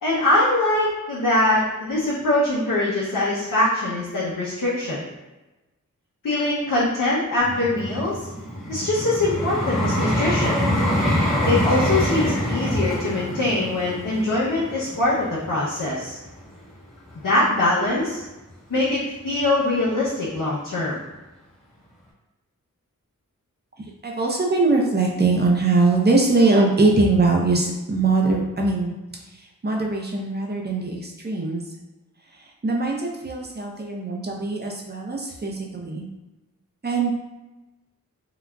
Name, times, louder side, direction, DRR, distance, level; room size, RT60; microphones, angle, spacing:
voice 1, 0.0-5.0 6.2-8.3 8.7-10.6 11.4-16.2 17.2-18.2 18.7-21.0, left 2 dB, 75° left, -8 dB, 0.7 m, -23 dB
Vehicle, 7.4-16.5 17.1-17.3, equal, ahead, 0.9 m, -25 dB
voice 2, 24.0-28.9 29.6-31.6 32.6-36.1 36.8-37.1, right 3 dB, 30° right, 0 dB, 0.6 m, -21 dB
3.8 x 2.2 x 2.2 m, 1.1 s
cardioid pair, 45°, 33 cm